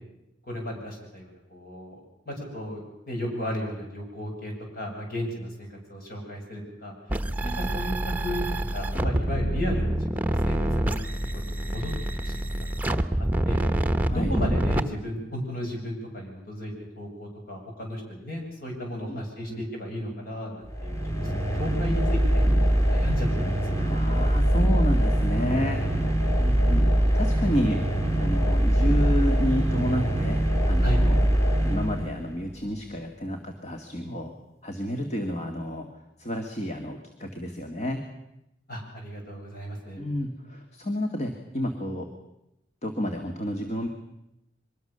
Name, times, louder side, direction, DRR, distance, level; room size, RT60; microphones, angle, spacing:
voice 1, 0.4-2.0 2.3-11.1 11.3-11.9 12.2-12.5 12.8-13.6 14.1-23.8 30.8-31.0 38.7-40.0, left 1 dB, 55° left, 1 dB, 7.9 m, -35 dB
sound 1, 7.1-14.8, right 1 dB, 10° right, 1.0 m, -26 dB
sound 2, 20.7-32.5, right 1 dB, 15° left, 2.5 m, -23 dB
voice 2, 23.8-25.9 26.4-27.8 28.2-31.2 31.6-34.3 34.6-35.9 36.2-38.0 40.0-42.1 42.8-43.9, equal, 40° left, 4 dB, 2.1 m, -30 dB
24.0 x 21.5 x 6.9 m, 0.87 s
head